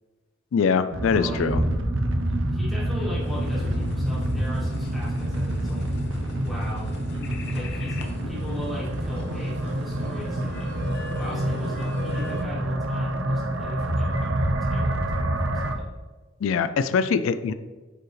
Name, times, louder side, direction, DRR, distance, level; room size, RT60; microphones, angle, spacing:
voice 1, 0.5-1.6 16.4-17.5, left 6 dB, 85° left, 12 dB, 0.3 m, -23 dB
sound 1, 0.9-15.7, right 1 dB, 80° right, 0.7 m, -27 dB
voice 2, 1.1-1.5 2.5-5.9 6.4-6.9 7.5-10.7 11.1-15.9, left 1 dB, ahead, -8 dB, 2.2 m, -39 dB
sound 2, 3.2-12.4, left 2 dB, 60° left, 0.8 m, -40 dB
8.7 x 4.8 x 3.2 m, 1.3 s
head